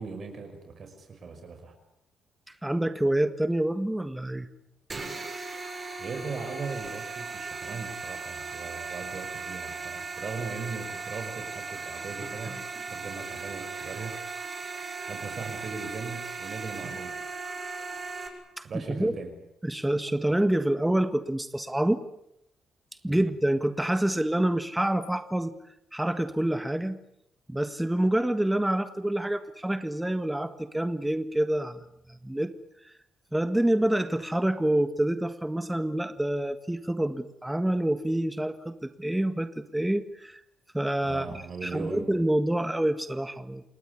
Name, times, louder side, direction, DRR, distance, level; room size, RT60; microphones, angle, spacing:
voice 1, 0.0-1.7 6.0-12.5 12.9-14.1 15.0-17.2 18.6-19.3 23.1-23.3 41.0-42.1, right 4 dB, 50° right, 6 dB, 5.6 m, -38 dB
voice 2, 2.6-4.5 18.6-19.1 19.6-22.1 23.0-25.5 25.9-27.0 27.5-32.5 33.3-40.4 40.7-43.6, right 1 dB, 5° right, 11 dB, 1.7 m, -27 dB
sound 1, 4.9-18.3, right 4 dB, 30° right, 7.3 m, -37 dB
29.0 x 19.0 x 9.8 m, 0.77 s
cardioid pair, 90°, 0 cm